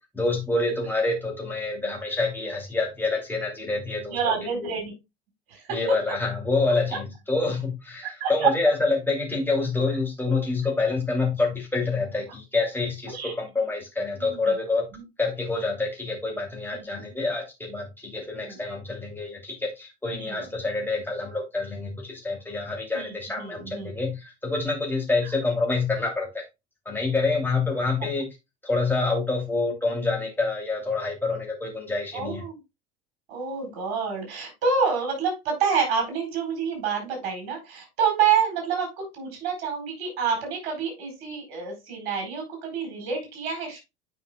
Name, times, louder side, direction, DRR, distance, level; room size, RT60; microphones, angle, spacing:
voice 1, 0.1-4.2 4.5-4.7 5.7-14.9 15.2-26.4 26.8-28.3 28.6-32.4, left 3 dB, 5° left, 2.7 m, -27 dB
voice 2, 4.0-4.9 5.5-5.8 8.0-8.5 13.1-13.3 14.2-14.5 16.7-17.0 18.3-18.6 20.1-20.5 22.9-23.9 32.1-32.6 33.3-43.8, right 6 dB, 55° right, 4.4 m, -28 dB
9.5 x 5.4 x 2.3 m
figure-of-eight pair, 75°, 31 cm